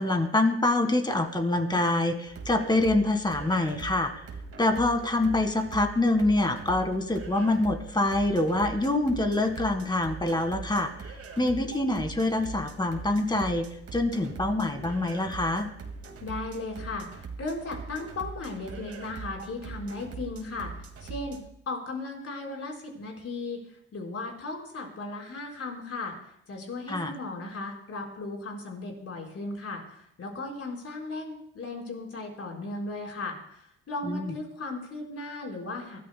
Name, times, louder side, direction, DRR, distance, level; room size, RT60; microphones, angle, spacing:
voice 1, 0.0-4.1 4.6-10.9 11.4-13.6 13.9-15.7 26.9-27.1 34.0-34.4, left 2 dB, 15° left, 7 dB, 1.7 m, -25 dB
sound 1, 2.3-21.4, right 4 dB, 50° right, 2.0 m, -42 dB
voice 2, 16.2-20.7 21.0-21.4 21.7-23.6 23.9-26.1 26.5-36.0, left 2 dB, 50° left, -1 dB, 4.4 m, -36 dB
24.0 x 13.5 x 2.2 m, 0.75 s
cardioid pair, 90°, 30 cm